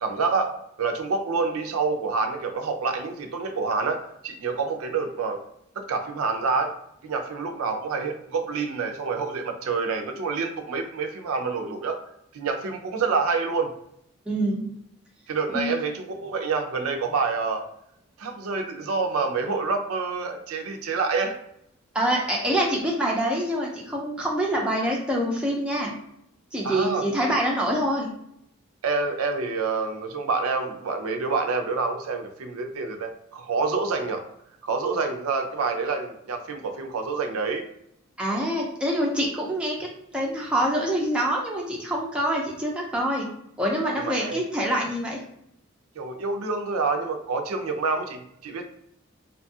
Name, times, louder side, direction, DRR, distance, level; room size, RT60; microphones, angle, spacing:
voice 1, 0.0-5.4 5.8-6.7 7.0-12.0 12.3-13.7 15.3-17.6 18.2-21.3 26.6-27.4 28.8-34.2 34.6-37.6 44.0-44.4 46.0-48.7, right 4 dB, 80° right, 4 dB, 0.4 m, -27 dB
voice 2, 14.3-14.7 15.5-15.7 21.9-25.9 26.5-28.1 38.2-43.3 43.6-45.2, right 1 dB, 5° right, -3 dB, 0.4 m, -25 dB
2.6 x 2.3 x 2.7 m, 0.76 s
head